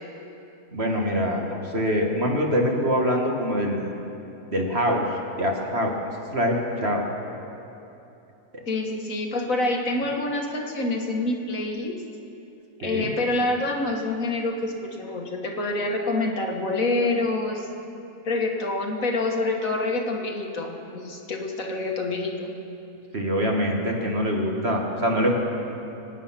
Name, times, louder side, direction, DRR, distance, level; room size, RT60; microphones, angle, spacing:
voice 1, 0.7-4.0 4.5-5.0 5.4-5.9 6.3-6.6 6.8-7.0 12.8-13.1 23.1-25.4, equal, 40° right, 0 dB, 1.8 m, -24 dB
voice 2, 8.7-12.0 12.8-17.7 18.2-22.5, left 2 dB, 55° left, 1 dB, 1.8 m, -27 dB
25.5 x 9.3 x 5.8 m, 2.9 s
omnidirectional pair, 1.8 m